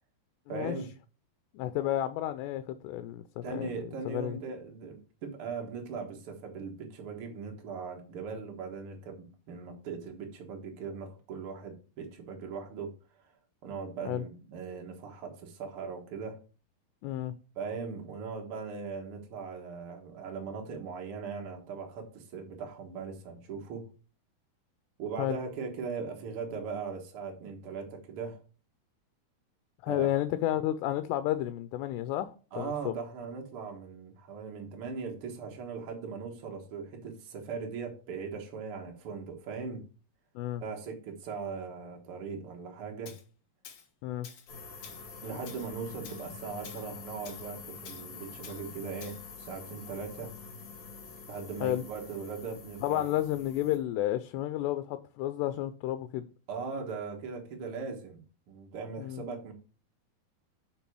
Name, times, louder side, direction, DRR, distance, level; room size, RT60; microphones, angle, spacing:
voice 1, 0.5-0.9 3.4-12.9 13.6-16.4 17.5-23.9 25.0-28.4 29.9-30.1 32.5-39.8 40.6-43.1 45.2-50.3 51.3-53.1 56.5-59.5, right 5 dB, 85° right, 1.2 m, -39 dB
voice 2, 1.5-4.4 14.1-14.2 17.0-17.3 25.2-25.4 29.8-32.9 40.4-40.6 44.0-44.3 51.6-51.8 52.8-56.3 59.0-59.2, left 13 dB, 90° left, 2.7 m, -31 dB
Tools, 43.0-43.2 43.6-43.9 44.2-44.5 44.8-45.0 45.5-45.7 46.0-46.2 46.6-46.8 47.2-47.4 47.8-48.0 48.4-48.6 49.0-49.2, left 7 dB, 70° left, 1.6 m, -49 dB
sound 1, 44.5-53.8, left 5 dB, 50° left, 2.6 m, -46 dB
7.0 x 5.9 x 4.6 m
omnidirectional pair, 4.8 m